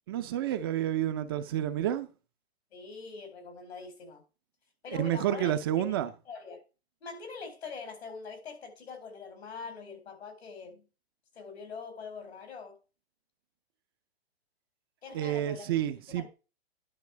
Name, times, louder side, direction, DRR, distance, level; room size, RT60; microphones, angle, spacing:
voice 1, 0.1-2.1 4.9-6.1 15.1-16.2, right 11 dB, 25° right, 0.4 m, -29 dB
voice 2, 2.7-4.2 4.8-5.5 6.3-6.6 7.0-10.8 11.3-12.8 15.0-15.7 16.1-16.3, left 5 dB, 85° left, 4.4 m, -43 dB
11.0 x 5.9 x 4.4 m
hypercardioid pair, 150°, 32 cm